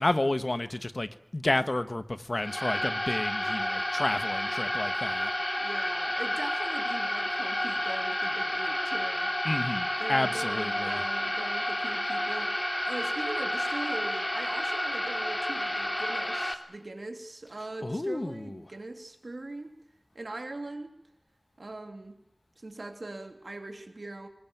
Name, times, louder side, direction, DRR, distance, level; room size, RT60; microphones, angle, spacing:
voice 1, 0.0-5.3 9.4-11.0 17.8-18.6, left 2 dB, 55° left, 1.3 m, -31 dB
sound 1, 2.4-16.5, left 1 dB, 30° left, 2.6 m, -30 dB
voice 2, 5.6-9.3 10.0-19.7 20.1-20.9 21.6-22.2 22.6-24.3, right 2 dB, 85° right, 3.1 m, -41 dB
23.5 x 20.0 x 9.3 m
wide cardioid pair, 45°, 0 cm